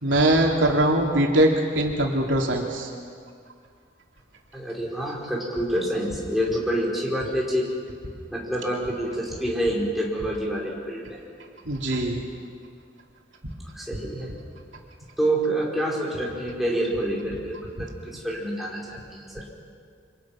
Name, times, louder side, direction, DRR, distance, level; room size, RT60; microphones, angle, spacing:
voice 1, 0.0-2.9 11.6-12.2, right 1 dB, 80° right, 0 dB, 3.2 m, -21 dB
voice 2, 4.5-7.7 8.3-11.2 13.7-14.3 15.2-19.5, right 1 dB, ahead, -4 dB, 5.1 m, -27 dB
28.5 x 26.0 x 6.0 m, 2.2 s
head